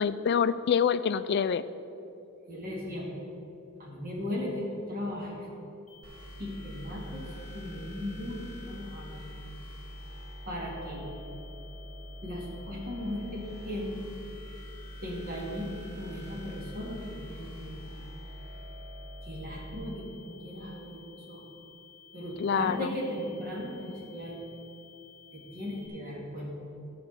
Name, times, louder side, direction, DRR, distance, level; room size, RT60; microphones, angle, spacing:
voice 1, 0.0-1.6 22.4-22.9, left 7 dB, 50° left, 14 dB, 0.3 m, -26 dB
voice 2, 2.5-3.1 3.8-5.5 6.4-7.2 7.5-9.2 10.4-11.1 12.2-14.0 15.0-17.9 19.2-21.4 22.1-24.4 25.3-26.5, left 1 dB, 40° right, -3 dB, 2.2 m, -37 dB
sound 1, 5.9-25.9, left 7 dB, ahead, 1.7 m, -55 dB
sound 2, 6.0-19.7, equal, 80° right, 1.7 m, -44 dB
11.5 x 6.0 x 6.4 m, 2.8 s
head